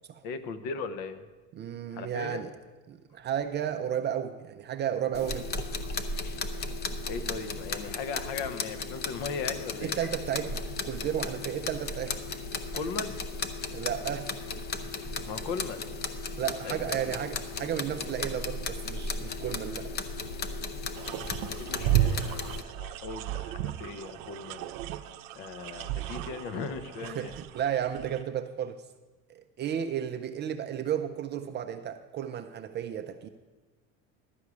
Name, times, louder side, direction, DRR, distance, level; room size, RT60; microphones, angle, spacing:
voice 1, 0.2-1.2 1.9-2.4 7.1-9.9 12.7-13.1 15.3-15.8 16.6-17.1 21.5-24.7 25.3-27.3, left 5 dB, 65° left, 10 dB, 0.9 m, -38 dB
voice 2, 1.5-2.5 2.9-5.5 9.8-12.2 13.6-14.3 15.0-15.3 16.4-19.9 27.0-28.8 29.3-33.3, right 9 dB, 30° right, 7 dB, 0.3 m, -33 dB
sound 1, 5.1-22.6, left 3 dB, 25° left, 0.6 m, -35 dB
sound 2, 21.0-28.2, right 12 dB, 70° right, 0.7 m, -33 dB
11.5 x 4.8 x 8.2 m, 1.2 s
supercardioid pair, 125°, 41 cm